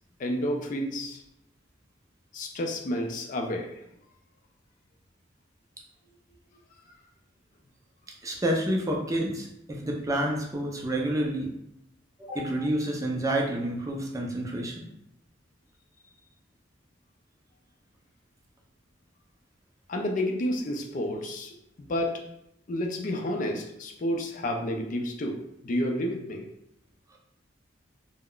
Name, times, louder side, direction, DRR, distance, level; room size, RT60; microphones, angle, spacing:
voice 1, 0.2-1.2 2.3-3.8 12.2-12.5 19.9-22.2 22.7-26.5, left 1 dB, 45° left, 2 dB, 0.4 m, -30 dB
voice 2, 8.2-11.5 12.2-14.8, right 1 dB, 15° right, 0 dB, 0.4 m, -29 dB
2.3 x 2.1 x 3.6 m, 0.79 s
head